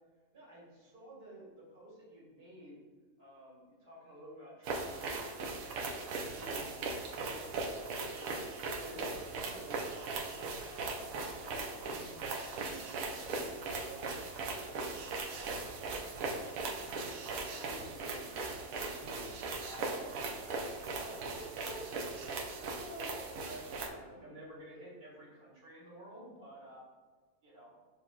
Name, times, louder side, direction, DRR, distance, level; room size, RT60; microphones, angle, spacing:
voice 1, 0.3-2.8 3.2-5.9 6.3-6.7 7.0-7.3 8.1-8.3 8.7-16.6 17.2-19.3 19.6-20.2 20.6-21.9 22.2-22.4 22.7-26.8 27.4-27.7, right 1 dB, 35° right, -7 dB, 1.7 m, -52 dB
sound 1, 4.6-23.9, right 3 dB, 70° right, 1.1 m, -39 dB
6.7 x 2.8 x 2.3 m, 1.4 s
omnidirectional pair, 1.9 m